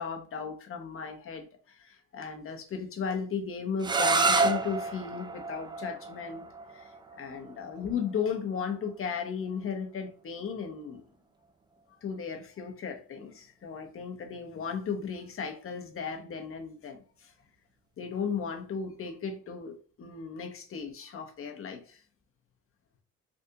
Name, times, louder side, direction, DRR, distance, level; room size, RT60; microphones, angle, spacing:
voice 1, 0.0-6.5 6.7-6.9 7.2-11.0 12.0-17.3 18.0-22.0, left 6 dB, 45° left, 4 dB, 0.8 m, -36 dB
sound 1, 3.8-9.5, right 3 dB, 15° right, 0.3 m, -30 dB
3.4 x 2.5 x 2.8 m, 0.40 s
cardioid pair, 90°, 30 cm